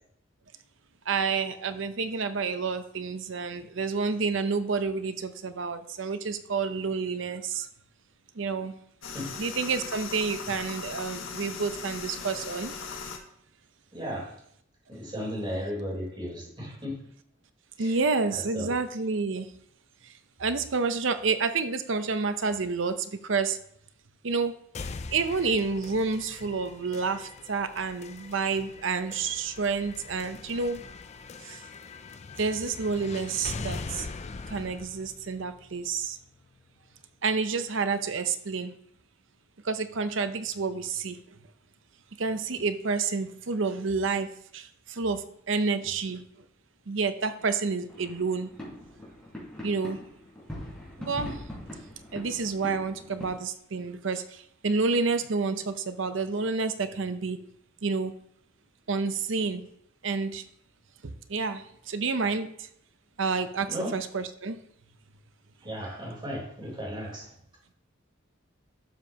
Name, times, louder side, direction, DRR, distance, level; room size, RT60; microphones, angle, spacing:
voice 1, 1.1-7.7 8.4-8.8 9.4-12.7 17.8-19.5 20.4-23.6 24.2-24.6 25.1-30.8 31.4-31.6 32.4-34.1 34.5-36.2 37.2-38.7 39.6-41.2 42.2-46.2 46.9-48.5 49.6-50.0 51.0-51.4 52.1-57.5 57.8-58.1 58.9-59.7 60.0-60.4 61.0-62.7 63.2-64.6, right 4 dB, 70° right, 10 dB, 0.7 m, -29 dB
sound 1, 9.0-13.2, left 5 dB, 80° left, 1.3 m, -39 dB
voice 2, 13.9-14.4 14.9-17.1 17.8-18.0 18.3-18.7 63.7-64.0 65.6-67.3, equal, 25° right, -3 dB, 3.7 m, -35 dB
sound 2, 24.7-36.7, left 4 dB, 35° left, 0.4 m, -42 dB
sound 3, 47.9-53.3, left 1 dB, 5° left, 4.4 m, -42 dB
12.0 x 7.4 x 2.9 m, 0.69 s
head